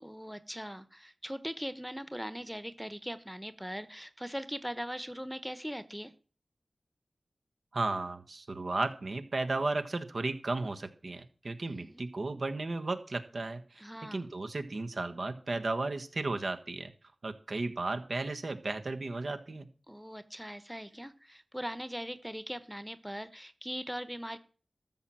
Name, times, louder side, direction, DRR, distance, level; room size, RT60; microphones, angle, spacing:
voice 1, 0.0-6.1 11.7-12.0 13.8-14.3 19.9-24.4, equal, ahead, 12 dB, 1.1 m, -40 dB
voice 2, 7.7-13.9 14.1-16.9 17.2-19.7, right 3 dB, 65° right, 8 dB, 1.4 m, -34 dB
13.5 x 5.8 x 7.7 m, 0.40 s
cardioid pair, 50°, 0 cm